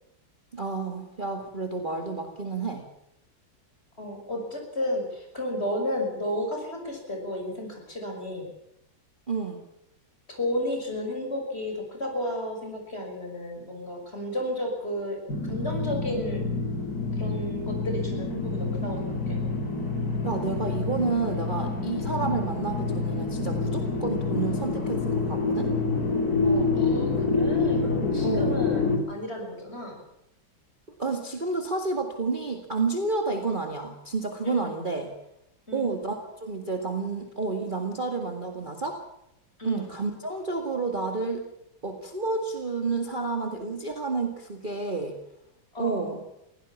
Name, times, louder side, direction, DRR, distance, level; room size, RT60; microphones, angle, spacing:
voice 1, 0.5-2.8 9.3-9.6 20.2-25.7 28.2-28.6 31.0-35.1 35.7-39.0 39.6-41.5 41.8-45.1 45.8-46.2, right 4 dB, 25° right, 4 dB, 2.1 m, -30 dB
voice 2, 4.0-8.5 10.3-15.2 15.5-16.5 17.1-19.4 26.4-30.0 34.4-34.8 35.7-35.9 39.6-39.9 45.7-46.2, left 1 dB, 30° left, 2 dB, 6.3 m, -33 dB
sound 1, 15.3-29.0, left 3 dB, 50° left, 3.5 m, -27 dB
23.0 x 17.0 x 7.2 m, 0.81 s
omnidirectional pair, 2.1 m